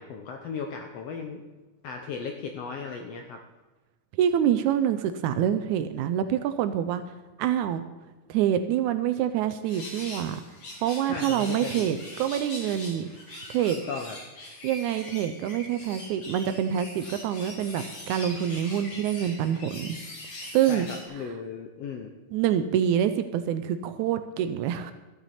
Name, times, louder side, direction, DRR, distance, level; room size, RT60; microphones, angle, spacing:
voice 1, 0.0-1.4 1.8-3.4 11.0-11.9 13.9-14.2 20.7-22.1, left 5 dB, 75° left, 4 dB, 1.4 m, -36 dB
voice 2, 4.2-7.0 7.4-7.8 8.3-10.4 10.8-13.1 13.5-13.8 14.6-20.0 20.5-20.9 22.3-24.9, right 10 dB, 80° right, 10 dB, 1.8 m, -26 dB
sound 1, 9.6-21.0, left 1 dB, 45° left, 3.1 m, -42 dB
13.5 x 8.9 x 4.2 m, 1.2 s
omnidirectional pair, 3.7 m